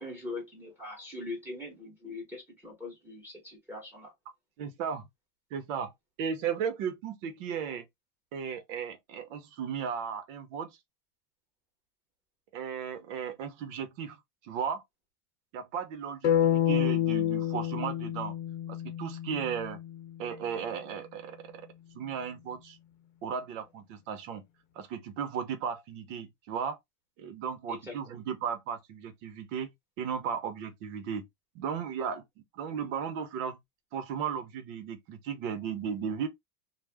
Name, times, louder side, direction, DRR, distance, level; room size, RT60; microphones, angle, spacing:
voice 1, 0.0-4.1 27.7-27.9, left 2 dB, 5° right, 1.0 m, -41 dB
voice 2, 4.6-5.1 5.5-5.9 6.2-7.9 8.3-10.8 12.5-14.8 15.5-18.4 18.7-19.8 20.2-21.7 21.9-22.8 23.2-24.4 24.8-26.8 27.2-31.3 31.5-32.2 32.5-33.6 33.9-36.3, right 7 dB, 70° right, 0.8 m, -35 dB
sound 1, 16.2-20.3, left 10 dB, 70° left, 0.7 m, -29 dB
2.4 x 2.0 x 3.3 m
supercardioid pair, 155°, 40 cm